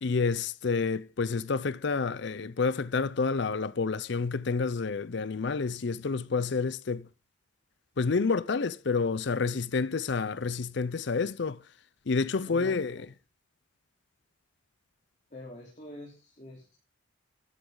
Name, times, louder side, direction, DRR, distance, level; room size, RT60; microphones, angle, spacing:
voice 1, 0.0-7.1 8.0-11.6 12.1-13.1, left 4 dB, 55° left, 0.5 m, -29 dB
voice 2, 12.5-13.0 15.3-16.8, left 1 dB, 35° left, 3.5 m, -45 dB
13.5 x 12.0 x 3.9 m
head